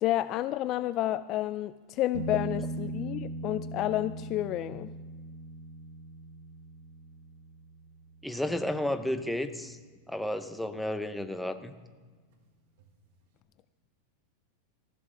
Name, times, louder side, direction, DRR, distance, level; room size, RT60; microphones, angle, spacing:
voice 1, 0.0-4.9, left 14 dB, 30° left, 14 dB, 0.3 m, -30 dB
sound 1, 2.1-9.8 12.8-12.9, right 2 dB, 60° right, 1.7 m, -40 dB
voice 2, 8.2-9.8 10.1-11.7, left 1 dB, ahead, 7 dB, 0.7 m, -32 dB
18.5 x 15.0 x 3.8 m, 1.5 s
supercardioid pair, 165°, 0 cm